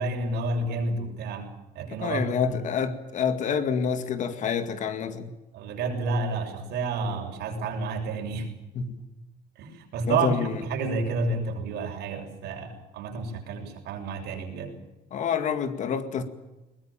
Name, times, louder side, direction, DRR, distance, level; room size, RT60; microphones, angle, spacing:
voice 1, 0.0-1.5 1.8-2.6 5.5-8.5 9.6-14.7, right 3 dB, 85° right, 7.0 m, -30 dB
voice 2, 2.0-5.3 8.7-9.0 10.1-10.6 15.1-16.2, left 6 dB, 45° left, 2.2 m, -27 dB
22.0 x 20.0 x 8.8 m
cardioid pair, 170°, 17 cm